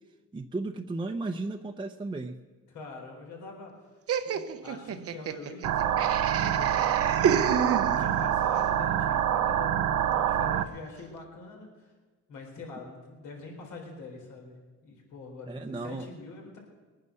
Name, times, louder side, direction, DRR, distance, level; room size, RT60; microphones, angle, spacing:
voice 1, 0.3-2.4 15.5-16.1, right 2 dB, 15° right, 3 dB, 0.7 m, -34 dB
voice 2, 2.7-3.9 4.2-7.7 7.9-11.9 12.3-16.6, left 3 dB, 85° left, 0 dB, 4.2 m, -45 dB
Laughter, 4.1-8.3, right 7 dB, 50° right, 0.8 m, -30 dB
sound 1, 5.6-10.6, right 10 dB, 85° right, 0.8 m, -26 dB
21.5 x 9.6 x 6.4 m, 1.3 s
cardioid pair, 90°, 30 cm